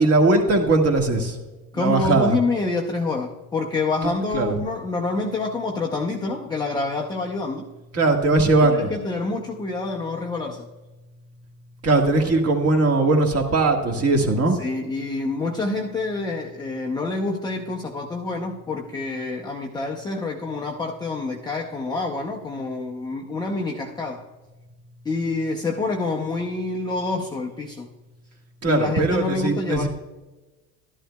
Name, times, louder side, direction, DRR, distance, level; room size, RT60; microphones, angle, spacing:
voice 1, 0.0-1.4 1.7-2.4 4.3-4.6 7.9-8.9 11.8-14.5 28.6-29.9, right 2 dB, 30° right, 3 dB, 1.6 m, -19 dB
voice 2, 1.7-7.7 8.7-10.7 14.6-24.2 25.0-27.9 28.6-29.9, left 3 dB, 10° left, -2 dB, 0.6 m, -27 dB
12.5 x 11.5 x 2.2 m, 1.2 s
supercardioid pair, 125°, 47 cm